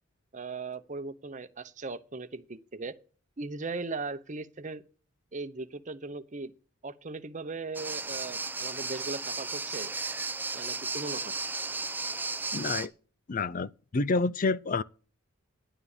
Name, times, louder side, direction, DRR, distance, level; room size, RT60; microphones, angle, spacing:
voice 1, 0.3-2.9 3.4-4.8 5.3-6.5 6.8-9.9 10.5-11.4, right 3 dB, 35° right, 0.8 m, -38 dB
sound 1, 7.8-12.9, right 3 dB, 10° right, 0.6 m, -34 dB
voice 2, 12.5-12.9 13.3-14.8, left 3 dB, 40° left, 0.5 m, -28 dB
11.0 x 9.4 x 5.0 m
head